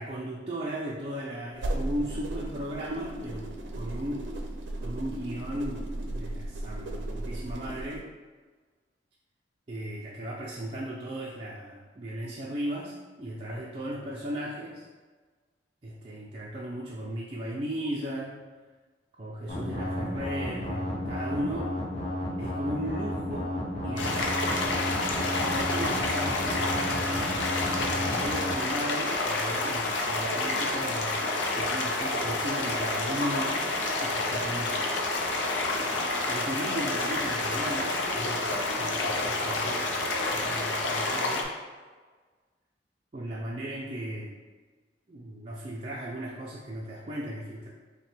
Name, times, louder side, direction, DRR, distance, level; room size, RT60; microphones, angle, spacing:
voice 1, 0.0-4.3 4.8-8.1 9.7-14.9 15.8-18.4 19.2-21.7 22.4-24.8 25.1-27.5 27.9-31.2 31.5-33.7 34.0-34.9 36.0-41.5 43.1-44.4 45.1-47.7, right 1 dB, 35° right, -5 dB, 0.4 m, -36 dB
sound 1, 1.5-8.0, right 1 dB, 90° right, 0.5 m, -35 dB
sound 2, 19.5-28.5, left 1 dB, 35° left, 0.8 m, -33 dB
sound 3, 24.0-41.4, left 2 dB, 90° left, 0.6 m, -29 dB
5.2 x 2.2 x 3.4 m, 1.4 s
head